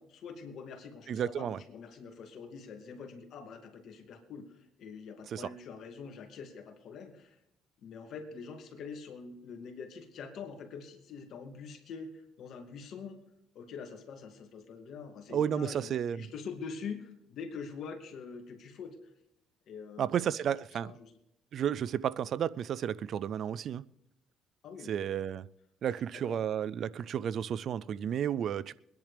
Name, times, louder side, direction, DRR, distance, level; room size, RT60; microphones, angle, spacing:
voice 1, 0.0-7.4 7.8-12.1 12.4-13.2 13.5-19.0 19.7-21.1 24.6-24.9 25.9-26.4, left 5 dB, 65° left, 2.3 m, -45 dB
voice 2, 1.1-1.6 5.3-5.4 15.3-16.3 20.0-20.9 21.5-23.8 24.9-25.4 25.8-28.8, right 9 dB, 60° right, 0.4 m, -32 dB
23.0 x 10.5 x 3.4 m
cardioid pair, 85°, 0 cm